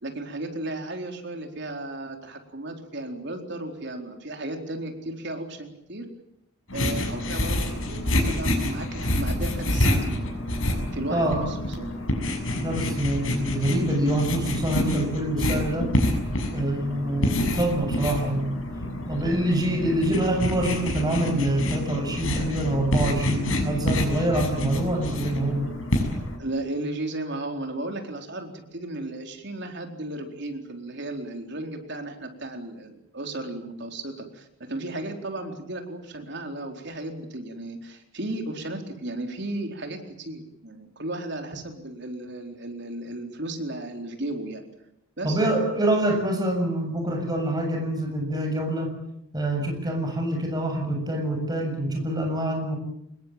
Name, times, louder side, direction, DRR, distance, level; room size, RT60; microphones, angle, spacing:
voice 1, 0.0-6.0 6.7-10.2 10.9-11.9 26.1-44.6 45.2-45.4, right 2 dB, 55° right, 4 dB, 4.2 m, -35 dB
sound 1, 6.7-26.4, left 1 dB, 70° left, 6.5 m, -27 dB
voice 2, 11.1-11.4 12.5-15.9 16.5-18.6 19.1-25.7 45.2-48.9 49.3-52.8, right 1 dB, 20° right, 3 dB, 7.3 m, -25 dB
26.0 x 21.0 x 9.0 m, 0.79 s
head